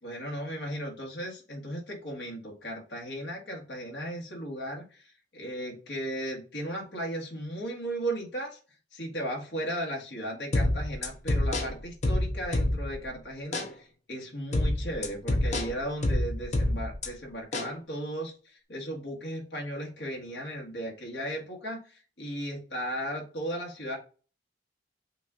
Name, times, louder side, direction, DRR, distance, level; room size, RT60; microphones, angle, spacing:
voice 1, 0.0-8.6 8.9-24.0, right 1 dB, 65° left, 0 dB, 1.6 m, -36 dB
sound 1, 10.5-13.1 13.5-13.7 14.5-17.1 17.5-17.7, left 1 dB, 40° left, 0.7 m, -27 dB
5.7 x 2.5 x 3.6 m, 0.37 s
head